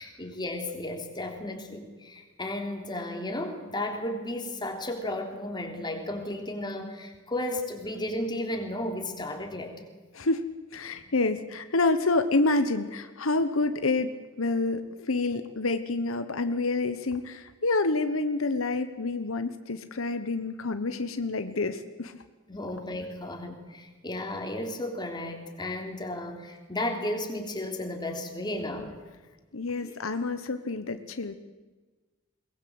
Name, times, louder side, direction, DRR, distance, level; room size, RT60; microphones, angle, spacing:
voice 1, 0.0-9.8 10.9-11.0 22.5-28.9 29.8-29.9, left 1 dB, 20° left, 3 dB, 3.4 m, -34 dB
voice 2, 10.7-22.1 29.5-31.3, left 3 dB, 80° left, 10 dB, 1.2 m, -28 dB
22.0 x 20.0 x 7.9 m, 1.3 s
head